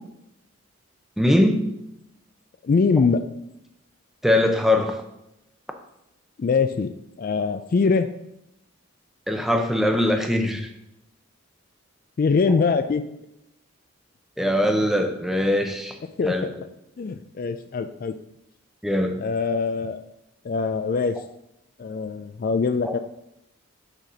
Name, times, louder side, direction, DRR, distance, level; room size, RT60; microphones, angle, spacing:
voice 1, 1.2-1.6 4.2-5.0 9.3-10.7 14.4-16.0 16.2-16.5 18.8-19.2 22.8-22.9, left 1 dB, ahead, 5 dB, 0.6 m, -21 dB
voice 2, 2.6-3.2 6.4-6.9 7.2-8.1 12.2-13.0 16.2-16.5 17.0-18.2 19.2-20.0 20.4-21.2 21.8-23.0, left 4 dB, 45° left, 10 dB, 0.3 m, -23 dB
6.6 x 4.1 x 6.1 m, 0.85 s
head